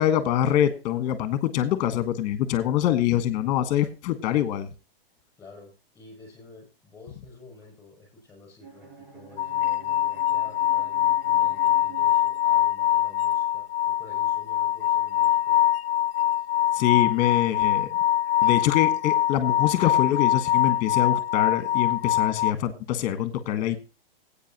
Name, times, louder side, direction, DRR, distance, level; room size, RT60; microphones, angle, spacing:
voice 1, 0.0-4.7 16.7-17.9 18.4-23.8, left 11 dB, 25° left, 10 dB, 1.4 m, -25 dB
voice 2, 5.4-15.6, left 3 dB, 10° left, 1 dB, 6.4 m, -49 dB
Bowed string instrument, 8.6-12.7, right 5 dB, 70° right, 6.1 m, -49 dB
sound 1, 9.4-22.5, left 12 dB, 90° left, 0.5 m, -23 dB
16.0 x 8.6 x 2.9 m, 0.31 s
hypercardioid pair, 165°, 29 cm